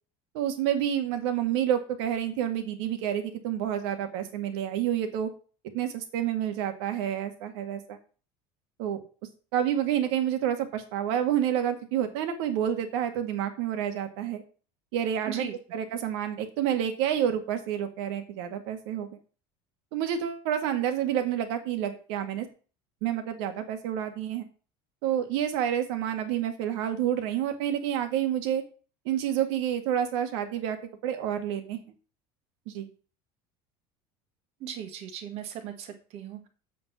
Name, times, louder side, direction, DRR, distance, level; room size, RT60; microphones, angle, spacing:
voice 1, 0.3-5.3 5.7-8.0 8.8-9.0 9.5-14.4 14.9-15.5 15.7-19.1 19.9-22.5 23.0-24.5 25.0-28.6 29.1-30.8 31.0-31.8 32.7-32.9, right 10 dB, 85° right, 7 dB, 1.9 m, -29 dB
voice 2, 34.6-36.5, right 9 dB, 50° right, 7 dB, 1.7 m, -38 dB
7.6 x 5.4 x 7.3 m, 0.37 s
cardioid pair, 165°, 13 cm